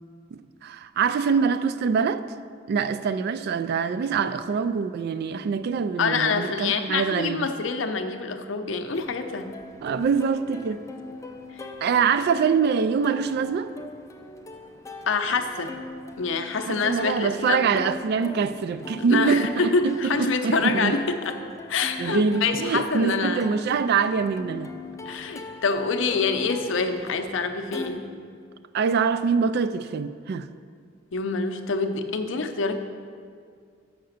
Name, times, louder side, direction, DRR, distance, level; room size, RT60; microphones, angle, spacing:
voice 1, 0.3-2.2 2.7-7.5 9.8-10.8 11.8-13.7 16.7-21.0 22.0-24.7 28.7-30.5, right 5 dB, 55° right, 0.3 m, -24 dB
voice 2, 6.0-9.6 11.5-11.6 15.1-15.8 16.2-17.9 19.1-21.4 21.7-23.4 25.1-28.1 31.1-32.8, left 4 dB, 70° left, 0.6 m, -26 dB
Plucked string instrument, 8.9-27.9, left 3 dB, 15° left, 0.4 m, -41 dB
6.7 x 5.7 x 6.4 m
head